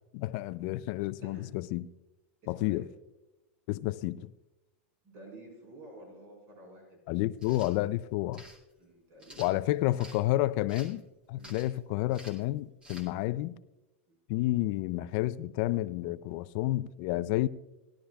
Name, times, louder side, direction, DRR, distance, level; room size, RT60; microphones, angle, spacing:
voice 1, 0.1-1.8 2.5-2.8 3.7-4.3 7.1-8.4 9.4-11.0 11.3-13.6 14.3-17.5, left 16 dB, 50° left, 0.4 m, -30 dB
voice 2, 2.4-2.9 5.0-7.0 8.8-9.6 10.0-10.4 11.4-11.6 14.1-14.2, right 1 dB, 40° right, 4.4 m, -51 dB
sound 1, 7.3-7.7 8.3-8.6 9.2-10.2 10.7-11.0 11.4-11.8 12.1-12.4 12.8-13.1, right 1 dB, 15° right, 2.1 m, -50 dB
17.0 x 11.5 x 2.3 m
hypercardioid pair, 125°, 7 cm